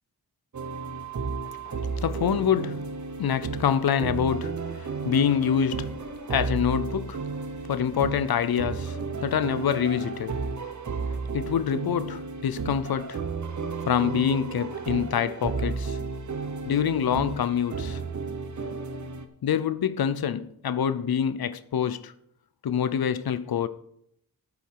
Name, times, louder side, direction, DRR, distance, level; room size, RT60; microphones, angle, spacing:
sound 1, 0.5-19.2, right 4 dB, 55° right, 1.2 m, -33 dB
voice 1, 1.7-2.9 3.2-6.0 6.3-7.2 7.7-10.4 11.3-13.2 13.9-16.0 16.7-18.0 19.4-22.1 22.6-23.7, left 8 dB, 80° left, 0.7 m, -26 dB
12.5 x 8.9 x 4.7 m
wide cardioid pair, 125°, 36 cm